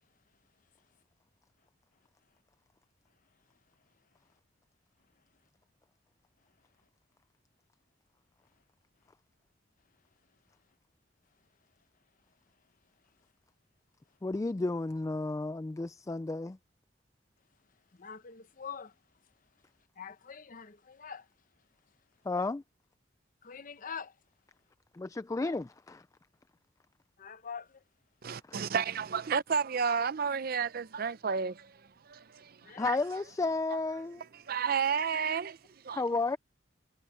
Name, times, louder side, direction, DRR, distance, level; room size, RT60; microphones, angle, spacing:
voice 1, 14.2-16.6 22.3-22.6 24.9-26.0 28.5-28.6 32.8-34.2 35.9-36.4, left 3 dB, 15° left, 0.3 m, -32 dB
voice 2, 17.9-19.0 20.0-21.3 23.4-24.2 27.2-27.8 32.6-33.0 34.9-35.0, left 6 dB, 45° left, 0.8 m, -44 dB
voice 3, 28.2-31.7 32.1-32.5 32.9-33.0 34.5-35.6 35.8-36.0, right 6 dB, 55° right, 0.6 m, -31 dB
head